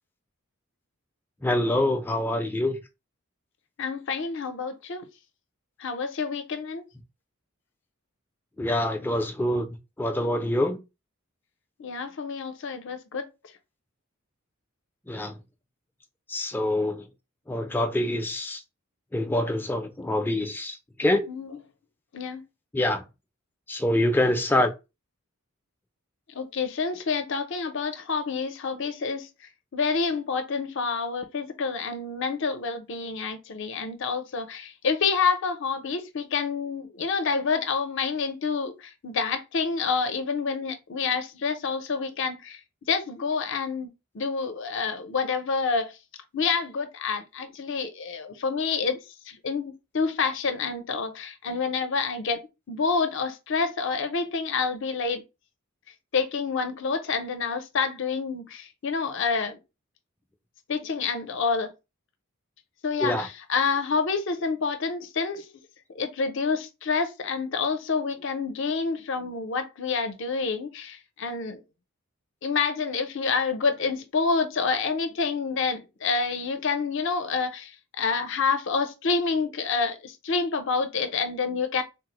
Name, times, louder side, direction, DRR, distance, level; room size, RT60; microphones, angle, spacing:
voice 1, 1.4-2.8 8.6-9.7 10.0-10.8 15.1-15.3 16.3-17.0 17.5-18.6 19.1-21.2 22.7-23.0 23.7-24.7 63.0-63.3, left 1 dB, 10° left, 0.4 m, -25 dB
voice 2, 3.8-5.1 5.8-6.8 11.8-13.3 21.3-21.6 22.1-22.4 26.3-29.3 29.7-42.6 42.9-46.0 46.3-49.0 49.3-55.2 56.1-59.6 60.7-61.7 62.8-65.5 65.9-71.6 72.4-81.8, left 5 dB, 60° left, 0.6 m, -28 dB
3.5 x 2.0 x 2.9 m
head